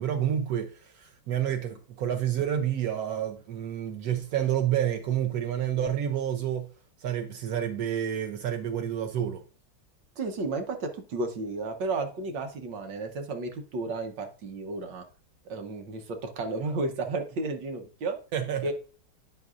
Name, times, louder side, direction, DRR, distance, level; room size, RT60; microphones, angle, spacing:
voice 1, 0.0-6.7 7.0-9.4 18.3-18.7, right 10 dB, 80° right, 0.8 m, -29 dB
voice 2, 10.2-15.0 15.4-18.2 18.6-18.7, right 3 dB, 65° right, 1.5 m, -33 dB
9.4 x 5.2 x 2.4 m
omnidirectional pair, 2.3 m